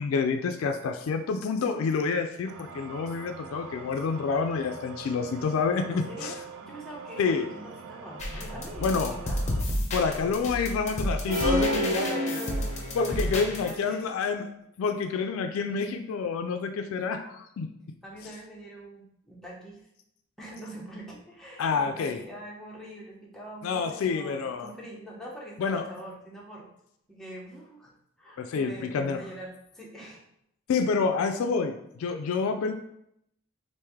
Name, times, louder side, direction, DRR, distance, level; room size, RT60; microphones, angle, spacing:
voice 1, 0.0-6.3 7.2-7.5 8.8-9.1 9.9-12.4 12.9-14.5 14.8-17.7 21.6-22.2 23.6-24.7 25.6-25.8 28.4-29.2 30.7-32.7, left 5 dB, 85° left, 6 dB, 0.3 m, -28 dB
sound 1, 2.5-9.6, right 5 dB, 85° right, 0.4 m, -44 dB
voice 2, 5.9-9.4 11.7-14.1 18.0-19.9 20.4-26.7 27.1-27.9 28.2-30.2, equal, ahead, -5 dB, 0.7 m, -43 dB
sound 2, 8.2-13.7, left 1 dB, 35° left, 0.7 m, -32 dB
sound 3, 11.3-13.3, equal, 40° right, 0.6 m, -29 dB
3.2 x 2.6 x 3.5 m, 0.76 s
head